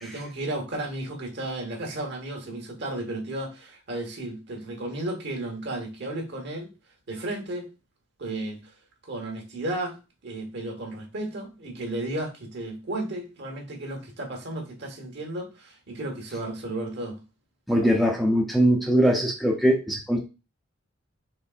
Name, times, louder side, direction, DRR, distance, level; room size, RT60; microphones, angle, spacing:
voice 1, 0.0-6.7 7.1-7.7 8.2-8.6 9.0-10.0 10.2-17.2, right 1 dB, 60° right, 1 dB, 1.2 m, -33 dB
voice 2, 17.7-20.2, equal, ahead, -1 dB, 0.6 m, -21 dB
4.3 x 3.1 x 2.4 m, 0.29 s
head